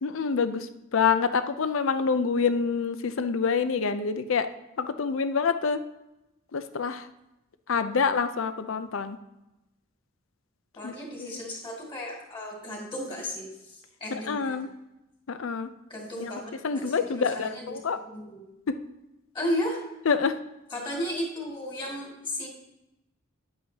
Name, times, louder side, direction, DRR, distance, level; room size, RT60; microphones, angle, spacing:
voice 1, 0.0-4.5 4.8-5.8 6.5-7.1 7.7-9.2 10.8-10.9 11.2-11.4 14.1-14.7 15.3-15.7 16.2-18.0 18.7-18.8 20.1-20.4, left 5 dB, 65° left, 11 dB, 0.5 m, -27 dB
voice 2, 10.8-14.6 15.9-17.8 18.1-18.4 19.3-19.8 20.7-22.5, left 1 dB, 25° left, -2 dB, 2.2 m, -34 dB
9.7 x 8.1 x 2.9 m, 0.94 s
head